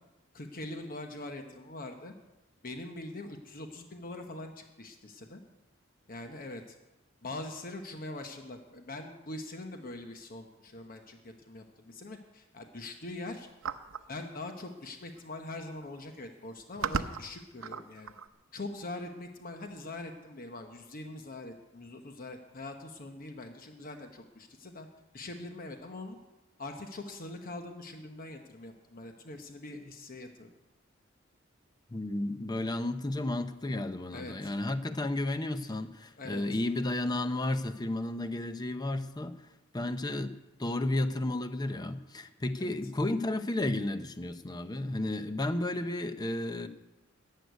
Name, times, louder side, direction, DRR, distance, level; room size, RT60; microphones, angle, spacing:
voice 1, 0.3-2.1 2.6-5.4 6.1-6.8 7.2-13.5 14.1-18.1 18.5-24.9 25.1-26.2 26.6-30.5 34.1-34.5 35.7-35.8 36.2-36.4 42.6-42.7, left 2 dB, 45° left, 5 dB, 1.0 m, -43 dB
sound 1, 13.6-14.1 15.1-15.2 15.5-15.8 16.4-18.3, right 6 dB, 85° right, 0.6 m, -36 dB
voice 2, 31.9-39.3 39.7-40.3 40.6-46.7, left 1 dB, 20° left, 10 dB, 0.7 m, -32 dB
14.5 x 6.5 x 9.4 m, 1.0 s
head